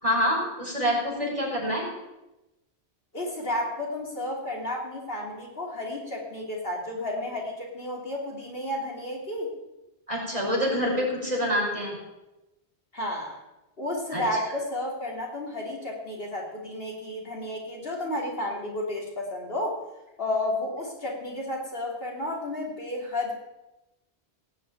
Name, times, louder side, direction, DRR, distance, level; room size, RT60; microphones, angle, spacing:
voice 1, 0.0-1.8 10.1-12.0 14.1-14.2, equal, 30° right, -3 dB, 5.4 m, -26 dB
voice 2, 3.1-9.5 12.9-13.4 13.8-19.8 20.2-23.3, left 1 dB, 60° left, -2 dB, 3.1 m, -32 dB
18.0 x 6.4 x 8.7 m, 0.98 s
omnidirectional pair, 1.1 m